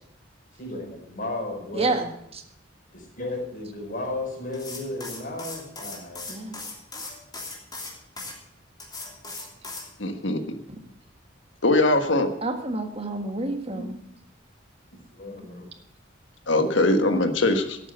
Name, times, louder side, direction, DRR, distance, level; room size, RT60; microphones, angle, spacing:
voice 1, 0.6-2.0 2.9-6.3 13.7-13.8 15.2-15.7, left 2 dB, 45° left, 0 dB, 5.2 m, -34 dB
voice 2, 1.7-2.1 6.3-6.6 12.4-13.9 15.4-15.6, right 2 dB, 30° right, 5 dB, 1.7 m, -28 dB
sound 1, 4.5-8.3 8.8-9.9, left 3 dB, 20° left, 3.0 m, -38 dB
voice 3, 10.0-10.4 11.6-12.3 16.5-17.8, left 2 dB, 70° left, 7 dB, 1.4 m, -21 dB
12.0 x 8.5 x 8.0 m, 0.76 s
head